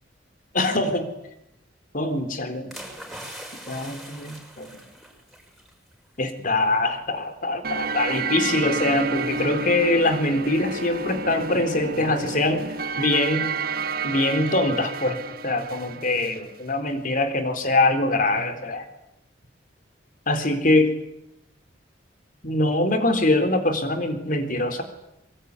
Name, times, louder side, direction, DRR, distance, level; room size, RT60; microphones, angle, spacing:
voice 1, 0.5-1.1 1.9-2.8 3.7-4.8 6.2-12.7 13.0-13.5 14.0-18.8 20.3-21.0 22.4-24.8, left 2 dB, 45° left, 8 dB, 4.0 m, -23 dB
sound 1, 2.7-5.7 6.1-6.3, right 1 dB, ahead, 6.8 m, -41 dB
sound 2, 7.6-16.4, right 4 dB, 50° right, 1.5 m, -30 dB
24.5 x 24.0 x 9.7 m, 0.86 s
head